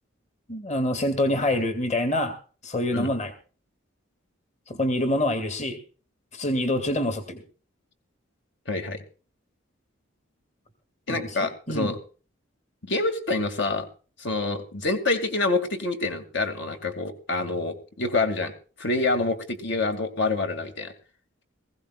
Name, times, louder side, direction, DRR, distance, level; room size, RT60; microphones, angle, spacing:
voice 1, 0.5-2.3 2.6-3.3 4.7-5.8 6.3-7.4 11.1-11.9, left 1 dB, 35° left, 8 dB, 2.1 m, -26 dB
voice 2, 8.7-9.0 11.1-12.0 12.9-13.9 14.2-18.5 18.8-20.9, left 3 dB, 60° left, 6 dB, 2.3 m, -27 dB
21.0 x 16.0 x 2.4 m, 0.37 s
head